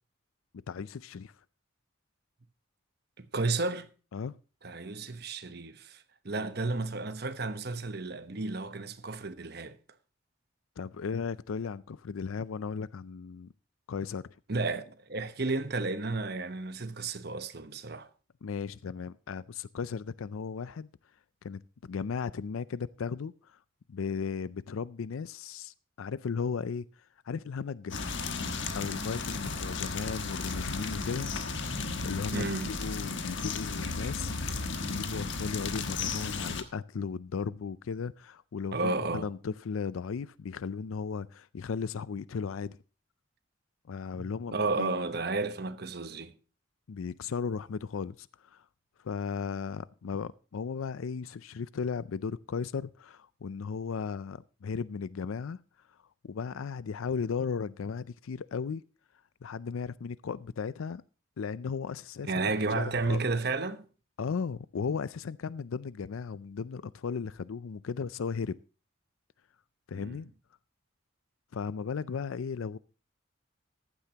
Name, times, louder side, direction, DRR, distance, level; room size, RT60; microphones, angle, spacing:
voice 1, 0.7-1.3 4.1-4.4 10.8-13.5 13.9-14.2 18.4-20.9 21.4-23.6 23.9-26.9 27.3-28.1 28.8-31.3 32.0-34.4 34.9-42.8 43.9-44.9 46.9-48.6 49.0-55.6 56.2-58.8 59.4-61.0 61.4-63.2 64.2-68.6 69.9-70.3 71.5-72.8, left 5 dB, 90° left, 0.4 m, -36 dB
voice 2, 3.2-3.9 4.6-9.8 14.5-18.1 32.3-32.7 38.7-39.3 44.2-46.3 62.3-63.8 69.9-70.2, right 3 dB, 50° right, 1.1 m, -32 dB
sound 1, 27.9-36.6, left 4 dB, 65° left, 1.4 m, -34 dB
15.0 x 12.0 x 2.9 m
head